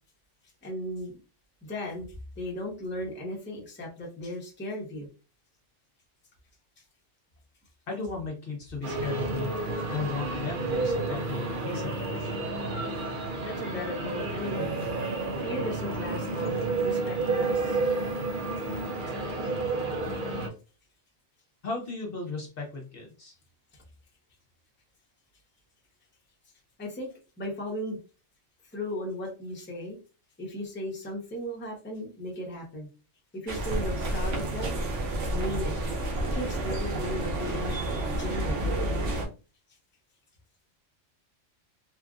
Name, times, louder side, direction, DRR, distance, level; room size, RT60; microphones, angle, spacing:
voice 1, 0.6-1.2 1.6-5.1 13.4-14.8 15.4-17.8 23.7-23.8 26.8-28.0 28.7-30.0 30.4-32.9 33.3-34.8 35.3-35.7 36.3-37.8 38.1-38.7, left 1 dB, 10° left, -2 dB, 0.7 m, -36 dB
voice 2, 7.9-9.6 9.9-12.2 21.6-23.4, left 3 dB, 55° left, 0 dB, 0.9 m, -35 dB
sound 1, 8.8-20.5, right 3 dB, 55° right, 0.7 m, -30 dB
sound 2, 33.5-39.3, right 1 dB, 85° right, 1.1 m, -30 dB
3.1 x 2.5 x 2.4 m, 0.33 s
omnidirectional pair, 1.3 m